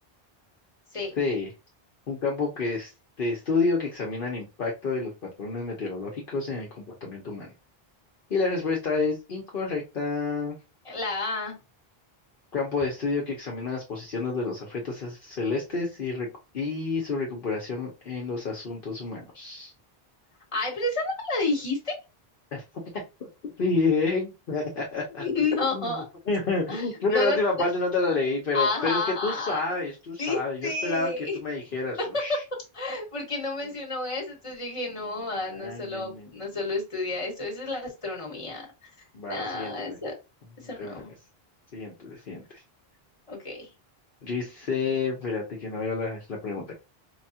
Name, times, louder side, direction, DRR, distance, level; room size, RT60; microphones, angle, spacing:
voice 1, 1.2-1.5 2.1-2.9 3.2-7.5 8.3-10.6 12.5-16.3 16.5-19.7 22.5-22.6 22.9-25.2 25.7-32.4 35.5-36.3 39.1-40.0 40.6-41.1 41.7-42.6 44.2-46.7, left 3 dB, 60° left, -1 dB, 1.0 m, -29 dB
voice 2, 10.8-11.6 20.5-21.9 25.2-26.0 26.7-27.7 28.5-29.7 30.2-31.4 32.7-38.9 39.3-40.1 40.6-41.1 43.3-43.7, left 3 dB, 30° left, -1 dB, 1.4 m, -30 dB
4.8 x 2.3 x 2.7 m, 0.27 s
omnidirectional pair, 1.0 m